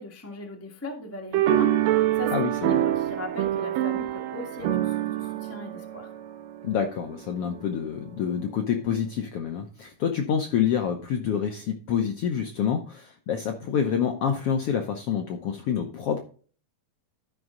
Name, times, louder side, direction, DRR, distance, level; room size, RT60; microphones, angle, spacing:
voice 1, 0.0-2.3 2.6-6.1, left 2 dB, 15° left, 2 dB, 0.5 m, -38 dB
sound 1, 1.3-6.9, right 13 dB, 75° right, 1.8 m, -26 dB
voice 2, 2.3-2.8 6.6-16.2, left 8 dB, 75° left, 5 dB, 1.4 m, -27 dB
13.0 x 5.3 x 3.8 m, 0.42 s
omnidirectional pair, 3.6 m